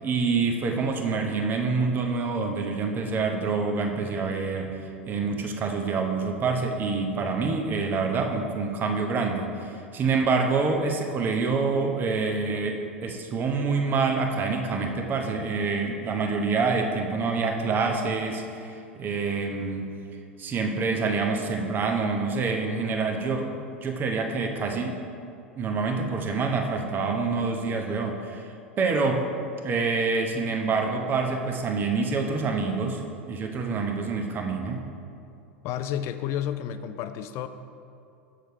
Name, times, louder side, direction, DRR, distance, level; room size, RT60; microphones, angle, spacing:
voice 1, 0.0-4.8 5.1-19.9 20.4-23.5 23.8-25.0 25.6-28.5 28.8-29.2 29.6-33.0 33.3-34.8, right 4 dB, 30° right, 3 dB, 0.9 m, -26 dB
voice 2, 35.6-37.5, left 10 dB, 45° left, 10 dB, 0.5 m, -31 dB
6.9 x 6.4 x 4.5 m, 2.5 s
figure-of-eight pair, 85°, 7 cm